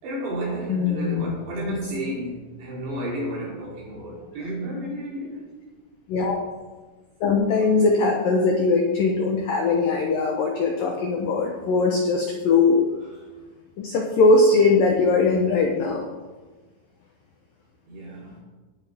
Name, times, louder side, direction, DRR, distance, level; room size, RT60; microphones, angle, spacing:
voice 1, 0.0-5.5 17.9-18.4, right 1 dB, 70° right, -5 dB, 5.5 m, -32 dB
voice 2, 0.7-1.4 1.7-1.8 6.1-6.4 7.2-12.8 13.8-16.1, left 3 dB, 75° left, 1 dB, 2.1 m, -20 dB
18.5 x 9.4 x 3.6 m, 1.3 s
omnidirectional pair, 5.5 m